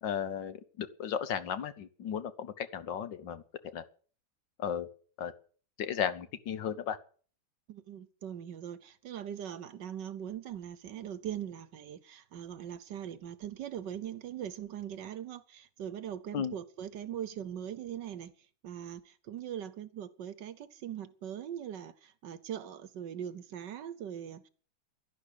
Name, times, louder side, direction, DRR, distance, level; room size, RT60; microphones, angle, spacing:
voice 1, 0.0-3.4 3.7-3.8 4.6-4.9 5.2-5.3 5.8-7.0 16.3-16.5, left 8 dB, 65° left, 1.6 m, -35 dB
voice 2, 7.7-18.3 18.6-24.5, right 9 dB, 65° right, 1.4 m, -41 dB
11.5 x 11.0 x 8.4 m
omnidirectional pair, 2.2 m